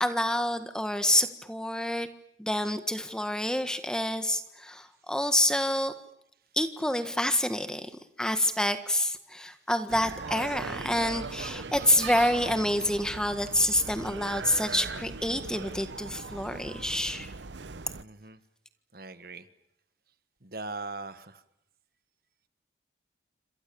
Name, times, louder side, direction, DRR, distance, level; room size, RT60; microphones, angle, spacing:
voice 1, 0.0-2.1 2.4-5.9 6.6-7.9 8.2-17.3, left 1 dB, 5° left, 9 dB, 1.6 m, -27 dB
sound 1, 9.9-18.0, right 4 dB, 85° right, 0.9 m, -39 dB
voice 2, 18.0-18.4 18.9-19.5 20.4-21.4, right 3 dB, 55° right, 12 dB, 1.5 m, -40 dB
28.0 x 26.5 x 7.1 m, 0.80 s
head